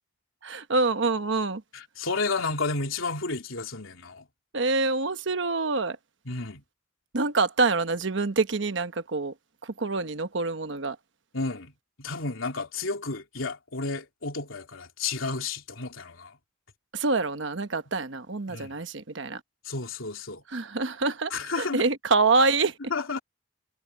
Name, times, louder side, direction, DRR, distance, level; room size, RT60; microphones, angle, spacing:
voice 1, 0.4-1.6 4.5-6.0 7.1-9.3 9.6-11.0 16.9-19.4 20.5-22.8, right 3 dB, 65° right, 1.1 m, -26 dB
voice 2, 1.7-4.3 6.2-6.6 11.3-11.7 12.0-16.4 18.5-18.8 19.6-20.4 21.3-21.9 22.9-23.2, left 3 dB, 90° left, 3.4 m, -32 dB
head